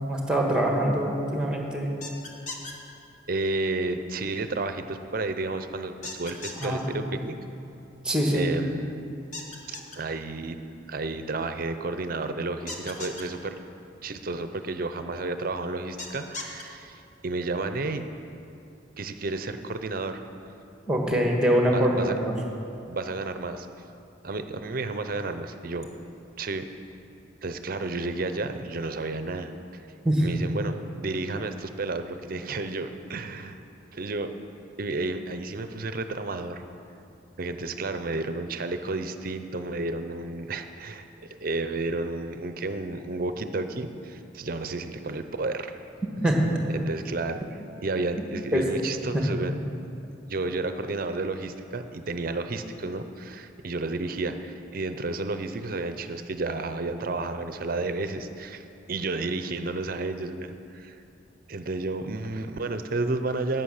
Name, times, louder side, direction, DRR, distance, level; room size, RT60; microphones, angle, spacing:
voice 1, 0.0-1.9 6.6-6.9 8.0-8.5 20.9-22.3 30.0-30.3 46.2-46.4 48.5-48.6 49.1-49.2, right 1 dB, 5° right, 0 dB, 1.4 m, -24 dB
sound 1, 2.0-2.7 6.0-6.7 9.3-10.0 12.7-13.2 16.0-16.6, left 3 dB, 40° left, 1.3 m, -37 dB
voice 2, 3.3-7.4 8.3-9.2 9.7-10.6 10.9-13.6 14.0-18.0 19.0-20.2 21.6-22.2 22.9-23.7 24.2-25.9 26.4-26.7 27.4-29.5 30.2-33.6 33.9-34.3 34.8-36.6 37.4-45.7 46.7-49.5 50.1-61.0 61.5-63.6, right 3 dB, 50° right, 9 dB, 0.6 m, -32 dB
11.5 x 9.1 x 6.5 m, 2.7 s
head